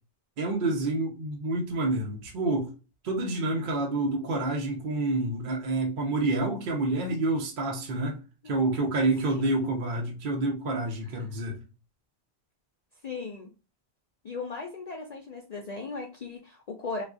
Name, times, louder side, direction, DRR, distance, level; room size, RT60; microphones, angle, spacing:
voice 1, 0.4-2.7 3.0-8.2 8.4-11.6, right 2 dB, 55° right, 0.8 m, -28 dB
voice 2, 13.0-13.5 14.2-17.0, left 4 dB, 55° left, 0.5 m, -37 dB
3.5 x 2.4 x 2.4 m
omnidirectional pair, 1.1 m